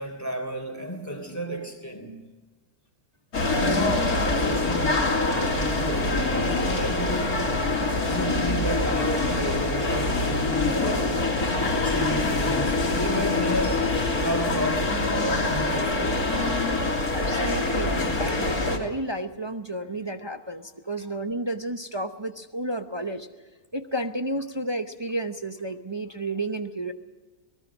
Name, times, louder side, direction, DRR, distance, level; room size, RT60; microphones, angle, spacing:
voice 1, 0.0-2.3 3.5-7.5 8.0-11.3 11.7-13.9 14.1-16.3 16.6-16.7 18.3-18.4 21.0-21.1, right 1 dB, 10° left, 5 dB, 3.5 m, -33 dB
sound 1, 3.3-18.8, left 2 dB, 75° left, 3.6 m, -25 dB
voice 2, 3.5-4.0 17.1-23.3 23.7-26.9, right 1 dB, 25° right, 6 dB, 0.7 m, -32 dB
26.0 x 19.5 x 6.2 m, 1.2 s
omnidirectional pair, 1.6 m